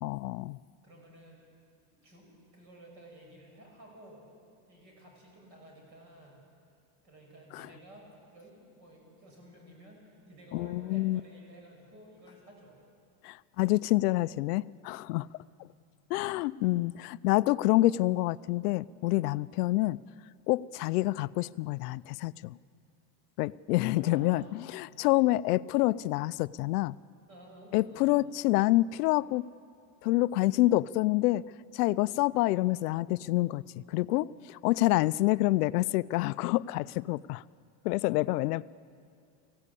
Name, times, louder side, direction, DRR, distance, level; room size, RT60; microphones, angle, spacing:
voice 1, 0.0-0.6 7.5-7.7 10.5-11.2 13.2-15.3 16.1-20.0 20.5-22.6 23.4-24.4 24.7-27.0 27.7-29.4 30.0-31.4 31.7-37.4 37.8-38.6, left 18 dB, 80° left, 18 dB, 0.5 m, -27 dB
voice 2, 0.8-1.4 1.9-4.2 4.7-6.3 7.0-12.8 15.1-15.3 23.6-24.5 27.3-28.1, right 1 dB, 35° right, 0 dB, 6.7 m, -53 dB
24.5 x 16.5 x 8.4 m, 2.4 s
supercardioid pair, 170°, 46 cm